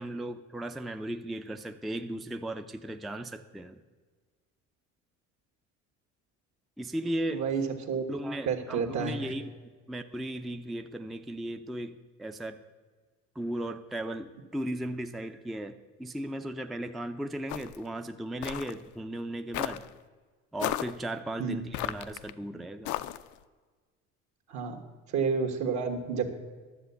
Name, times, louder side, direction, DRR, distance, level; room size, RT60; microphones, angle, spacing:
voice 1, 0.0-3.8 6.8-7.4 8.1-9.5 9.9-12.6 13.4-19.8 20.5-22.9, right 1 dB, ahead, 7 dB, 0.4 m, -36 dB
voice 2, 7.3-8.0 8.4-9.3 21.4-21.6 24.5-24.8 25.1-26.3, right 5 dB, 65° right, 5 dB, 1.7 m, -30 dB
Footsteps Mountain Boots Gravel Mono, 17.5-17.8 18.4-18.8 19.5-19.9 20.6-21.0 21.7-22.3 22.9-23.3, left 14 dB, 70° left, 0.5 m, -34 dB
11.0 x 7.3 x 6.8 m, 1.4 s
cardioid pair, 100°, 30 cm